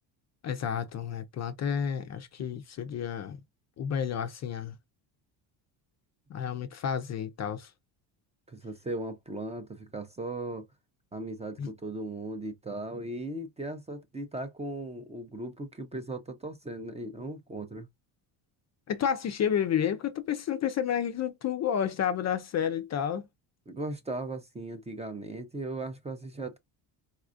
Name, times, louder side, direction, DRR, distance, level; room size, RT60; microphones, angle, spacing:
voice 1, 0.4-3.4 3.8-4.7 6.3-7.7 11.6-11.7 18.9-23.3, left 8 dB, 40° left, 0.5 m, -30 dB
voice 2, 8.5-10.7 11.1-17.9 23.7-26.6, right 2 dB, 15° right, 0.5 m, -37 dB
4.1 x 2.4 x 2.5 m
cardioid pair, 115°, 46 cm